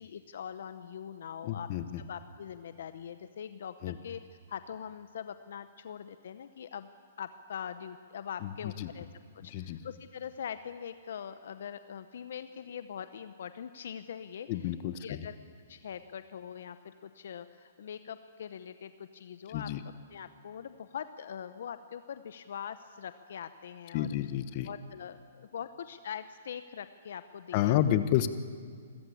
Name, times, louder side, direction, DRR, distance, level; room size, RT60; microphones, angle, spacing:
voice 1, 0.0-4.2 4.5-6.9 7.2-9.1 9.4-15.4 15.7-24.2 24.6-27.8, left 8 dB, 65° left, 11 dB, 0.8 m, -43 dB
voice 2, 1.4-1.8 3.8-3.9 8.4-8.5 8.8-8.9 9.5-9.8 14.5-15.3 19.5-19.8 23.9-24.7 27.5-28.3, left 12 dB, 40° left, 11 dB, 1.2 m, -29 dB
26.5 x 14.5 x 8.6 m, 2.1 s
hypercardioid pair, 135°, 0 cm